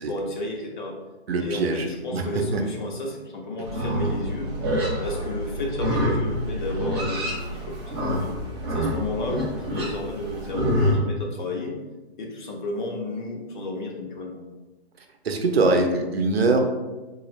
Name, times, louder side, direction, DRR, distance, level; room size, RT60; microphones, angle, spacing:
voice 1, 0.1-0.9 1.4-4.5 5.0-7.8 8.0-8.3 8.7-11.8 12.2-14.4, left 2 dB, 45° left, 0 dB, 0.8 m, -32 dB
voice 2, 1.3-2.2 2.5-2.6 15.2-16.6, right 3 dB, 65° right, 4 dB, 0.6 m, -22 dB
Livestock farm animals working animals, 3.6-10.9, equal, 25° right, 0.6 m, -27 dB
3.9 x 2.4 x 3.0 m, 1.2 s
figure-of-eight pair, 140°, 33 cm